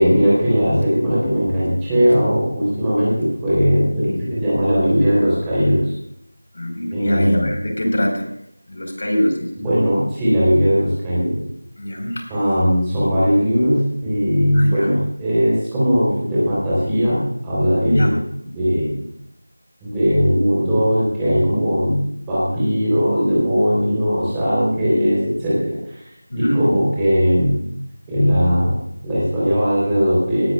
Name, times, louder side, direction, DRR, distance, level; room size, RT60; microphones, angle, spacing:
voice 1, 0.0-5.9 6.9-7.5 9.6-11.4 12.3-18.2 18.5-18.9 19.8-22.0 22.3-26.0 26.4-27.6 28.1-28.7 29.0-30.5, equal, 5° right, -9 dB, 3.6 m, -18 dB
voice 2, 6.5-8.3 8.7-9.7 11.8-12.3 14.5-14.9 17.8-18.1 26.3-26.6, equal, 50° left, 2 dB, 4.6 m, -22 dB
19.0 x 13.5 x 2.4 m, 0.74 s
figure-of-eight pair, 175°, 0 cm